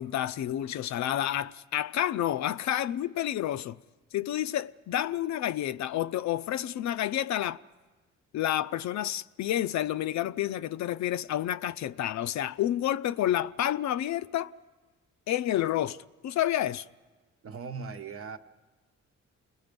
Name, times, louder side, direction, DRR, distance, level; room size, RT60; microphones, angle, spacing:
voice 1, 0.0-3.8 4.1-7.6 8.3-14.5 15.3-16.0 16.2-16.8, left 12 dB, 65° left, 0.5 m, -29 dB
voice 2, 17.4-18.4, right 5 dB, 50° right, 1.0 m, -39 dB
28.5 x 20.0 x 5.3 m
cardioid pair, 90°, 30 cm